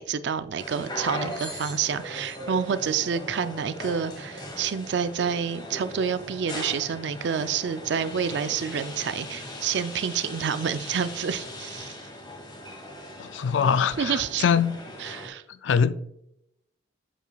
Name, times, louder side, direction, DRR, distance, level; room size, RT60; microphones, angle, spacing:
voice 1, 0.0-12.0 14.0-14.4 15.0-15.4, right 7 dB, 65° right, 0.4 m, -28 dB
sound 1, 0.6-15.3, left 1 dB, 25° left, 1.5 m, -39 dB
voice 2, 13.2-14.8 15.5-15.9, left 6 dB, 80° left, 0.4 m, -23 dB
8.0 x 7.5 x 2.3 m
head